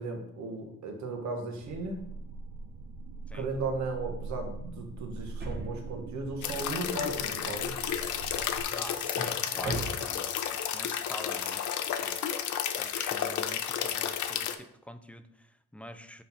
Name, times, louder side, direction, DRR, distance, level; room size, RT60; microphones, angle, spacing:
voice 1, 0.0-2.0 3.3-7.8, right 3 dB, 65° right, 3 dB, 1.3 m, -36 dB
sound 1, 1.6-8.6, right 3 dB, 85° right, 0.6 m, -42 dB
Drawer open or close, 5.4-6.3 6.9-10.4 10.6-10.7, right 3 dB, 35° right, 1.2 m, -40 dB
sound 2, 6.4-14.5, left 9 dB, 75° left, 0.6 m, -32 dB
voice 2, 8.8-11.7 12.0-16.2, equal, 5° left, 10 dB, 0.3 m, -47 dB
5.5 x 4.2 x 4.1 m, 0.76 s
cardioid pair, 90°, 30 cm